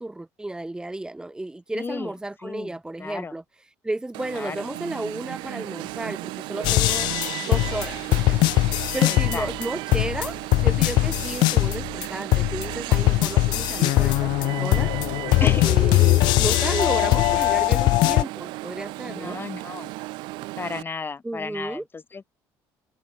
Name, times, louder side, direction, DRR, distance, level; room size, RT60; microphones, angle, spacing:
voice 1, 0.0-7.2 7.4-14.9 15.4-19.4 21.2-21.8, right 2 dB, 10° right, 1.5 m, -33 dB
voice 2, 1.7-2.1 2.4-2.7 3.0-3.3 4.3-4.6 9.1-9.5 15.4-15.7 19.1-19.9 20.6-22.3, left 5 dB, 30° left, 5.7 m, -33 dB
Alarm, 4.1-20.8, right 22 dB, 80° right, 1.2 m, -35 dB
sound 1, 6.6-9.6 9.9-12.0 12.3-18.2, left 19 dB, 75° left, 0.4 m, -21 dB
open air
supercardioid pair, 95°, 8 cm